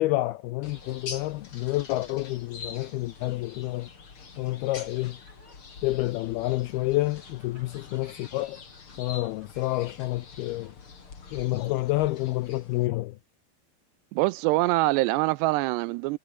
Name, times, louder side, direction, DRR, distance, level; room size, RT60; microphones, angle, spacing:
voice 1, 0.0-3.9 4.4-5.2 5.8-8.6 9.0-10.7 11.3-13.2, left 18 dB, 90° left, 2.3 m, -29 dB
sound 1, 0.6-12.9, left 5 dB, 30° left, 3.6 m, -45 dB
Laughter, 3.7-12.2 12.6-13.3, right 2 dB, 25° right, 8.7 m, -62 dB
voice 2, 14.1-16.2, right 20 dB, 80° right, 2.5 m, -24 dB
omnidirectional pair, 5.2 m